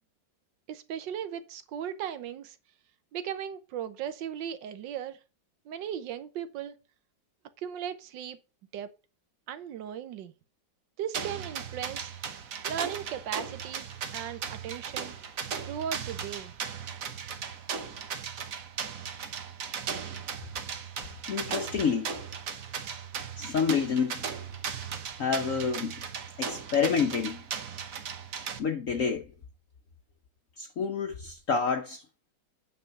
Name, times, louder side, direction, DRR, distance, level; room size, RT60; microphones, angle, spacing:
voice 1, 0.7-2.6 3.1-5.2 5.6-6.8 7.6-8.4 8.7-8.9 9.5-10.3 11.0-12.1 12.6-13.9 14.1-15.1 15.6-16.5, right 9 dB, 85° right, 1.5 m, -37 dB
sound 1, 11.1-28.6, right 7 dB, 55° right, 1.2 m, -37 dB
voice 2, 21.3-22.2 23.4-24.2 25.2-26.0 26.4-27.4 28.6-29.3 30.6-32.0, left 6 dB, 55° left, 1.0 m, -28 dB
9.0 x 3.8 x 5.7 m
omnidirectional pair, 1.9 m